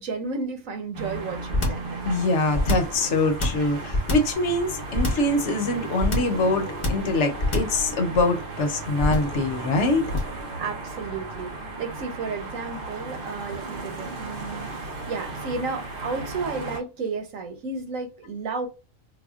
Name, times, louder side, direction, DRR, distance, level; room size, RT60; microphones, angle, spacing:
voice 1, 0.0-1.9 10.6-11.5 11.8-18.7, right 4 dB, 85° right, 1.3 m, -32 dB
sound 1, 0.9-16.8, right 2 dB, 50° right, 0.9 m, -35 dB
sound 2, 1.5-1.9 2.5-3.0 3.4-4.4 4.9-5.3 6.0-6.4 6.8-7.1 7.4-7.8 9.0-9.4 10.1-10.4, left 2 dB, 30° left, 0.7 m, -24 dB
voice 2, 2.0-10.1, left 2 dB, 65° left, 1.0 m, -24 dB
4.8 x 2.2 x 2.4 m
omnidirectional pair, 1.3 m